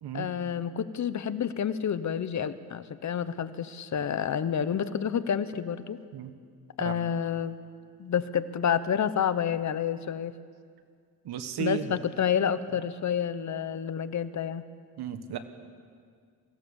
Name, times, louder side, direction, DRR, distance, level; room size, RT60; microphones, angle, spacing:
voice 1, 0.1-6.0 6.8-7.6 8.0-10.3 11.6-14.7, left 8 dB, 45° left, 13 dB, 0.9 m, -29 dB
voice 2, 11.2-12.0 15.0-15.4, right 9 dB, 75° right, 9 dB, 1.5 m, -34 dB
23.5 x 16.5 x 7.1 m, 2.1 s
cardioid pair, 110°, 39 cm